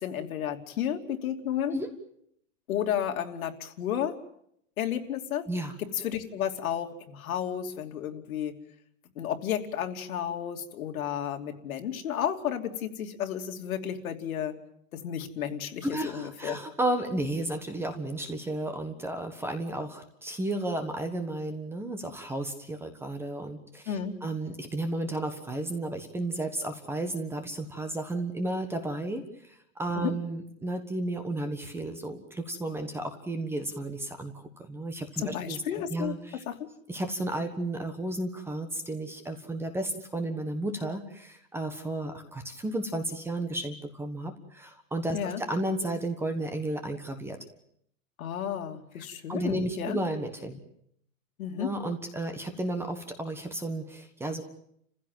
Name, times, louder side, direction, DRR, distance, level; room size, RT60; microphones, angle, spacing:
voice 1, 0.0-1.8 2.7-4.2 4.8-5.5 5.9-8.5 9.2-14.6 14.9-16.6 23.9-24.2 30.0-30.1 35.2-36.2 36.5-36.6 45.1-45.4 48.2-50.0 51.4-51.7, left 9 dB, 80° left, 5 dB, 3.0 m, -32 dB
voice 2, 5.5-5.8 15.8-34.3 34.7-35.6 35.9-36.4 36.9-47.4 49.0-49.1 49.3-50.6 51.6-54.4, right 1 dB, 5° right, 7 dB, 1.4 m, -33 dB
30.0 x 16.0 x 9.2 m, 0.72 s
supercardioid pair, 170°, 42 cm